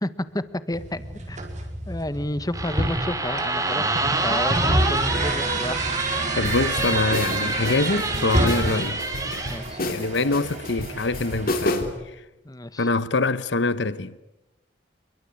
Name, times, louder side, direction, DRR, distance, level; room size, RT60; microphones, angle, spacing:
voice 1, 0.0-1.4 1.9-5.8 9.5-9.8 12.4-12.9, left 1 dB, 20° left, 1.3 m, -31 dB
sound 1, 0.7-11.7, right 1 dB, 40° right, 4.8 m, -29 dB
sound 2, 2.5-9.6, right 2 dB, 20° right, 4.0 m, -27 dB
voice 2, 6.3-9.0 9.3-9.5 9.9-12.2 12.8-14.2, left 3 dB, 70° left, 1.0 m, -25 dB
sound 3, 6.4-12.0, left 1 dB, 55° left, 3.3 m, -30 dB
28.5 x 22.5 x 8.8 m
head